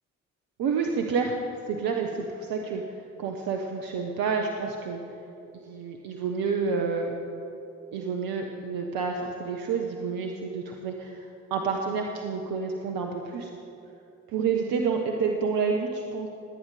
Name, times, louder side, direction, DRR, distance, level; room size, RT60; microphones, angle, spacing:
voice 1, 0.6-1.3 1.7-2.8 3.2-5.0 5.6-7.1 7.9-13.5 14.3-16.3, right 5 dB, 65° right, 2 dB, 1.1 m, -29 dB
20.0 x 8.9 x 4.9 m, 2.7 s
hypercardioid pair, 45°, 38 cm